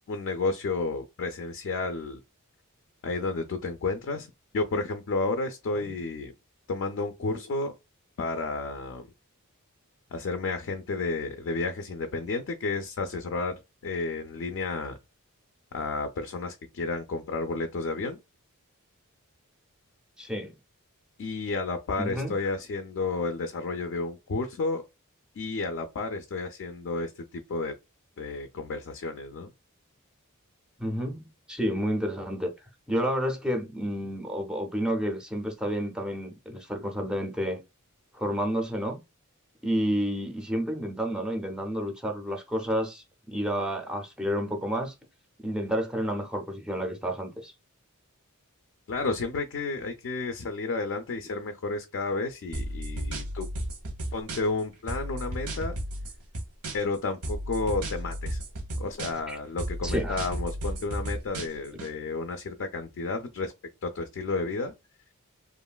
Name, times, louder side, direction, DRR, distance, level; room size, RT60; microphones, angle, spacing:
voice 1, 0.1-2.2 3.0-4.3 4.5-6.3 6.7-7.7 8.2-9.1 10.1-13.5 13.8-15.0 15.7-18.2 21.2-24.8 25.4-27.7 28.2-29.5 48.9-53.5 54.1-55.8 56.7-58.4 58.8-63.5 63.8-64.7, left 3 dB, 60° left, 0.4 m, -31 dB
voice 2, 20.2-20.5 22.0-22.3 30.8-32.5 32.9-37.6 38.1-39.0 39.6-44.9 45.4-47.5 59.3-59.4 59.8-60.2, equal, 5° right, 0.4 m, -30 dB
sound 1, 52.5-54.6 54.9-57.0 57.2-59.3 59.6-61.9, right 1 dB, 85° right, 0.9 m, -33 dB
3.0 x 2.4 x 2.2 m
head